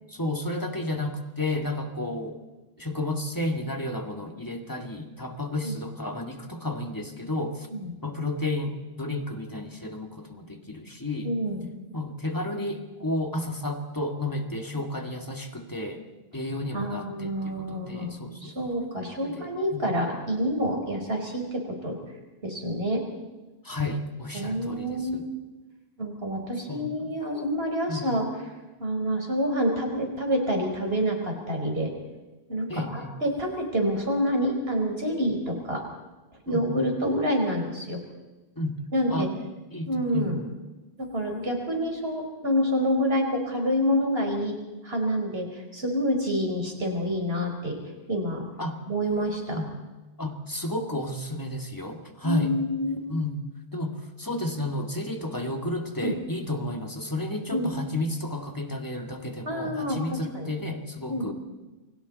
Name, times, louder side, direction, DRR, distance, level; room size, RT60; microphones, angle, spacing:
voice 1, 0.1-2.4 2.8-7.7 8.0-11.3 11.9-16.0 16.3-18.6 19.2-19.8 23.6-25.3 26.7-27.2 27.9-28.1 32.7-33.1 36.5-36.8 38.6-38.8 39.1-39.3 39.7-40.4 48.6-48.8 49.5-49.7 50.2-52.6 53.1-53.4 53.7-61.3, left 1 dB, 20° left, 4 dB, 2.2 m, -32 dB
voice 2, 11.2-11.7 16.7-18.1 18.4-22.0 22.4-23.1 24.3-25.1 26.0-28.3 28.8-31.9 32.5-35.8 36.5-38.0 38.9-39.3 39.8-40.4 41.0-44.5 44.8-47.8 48.1-48.4 48.9-49.6 52.2-53.0 56.0-56.1 57.5-57.7 59.5-60.5 61.1-61.3, equal, 65° right, 2 dB, 5.0 m, -27 dB
28.5 x 24.0 x 4.2 m, 1.2 s
omnidirectional pair, 1.1 m